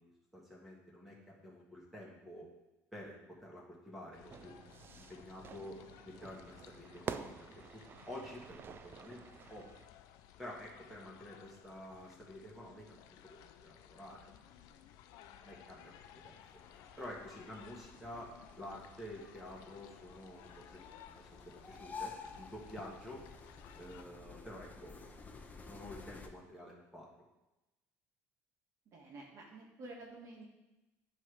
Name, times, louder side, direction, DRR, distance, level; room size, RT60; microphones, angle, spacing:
voice 1, 0.0-2.5 2.9-4.7 4.9-7.6 8.1-9.7 10.4-14.3 15.4-15.8 16.2-16.4 17.0-23.2 23.8-25.0 25.4-27.1, left 1 dB, ahead, -4 dB, 1.6 m, -50 dB
sound 1, 4.1-24.0, left 10 dB, 80° left, 0.4 m, -58 dB
Fire / Fireworks, 4.3-9.9, right 7 dB, 35° right, 0.3 m, -49 dB
sound 2, 15.9-26.3, left 4 dB, 25° left, 0.7 m, -52 dB
voice 2, 28.8-30.5, right 2 dB, 50° right, -1 dB, 1.4 m, -50 dB
8.5 x 3.3 x 4.8 m, 0.99 s
cardioid pair, 115°, 6 cm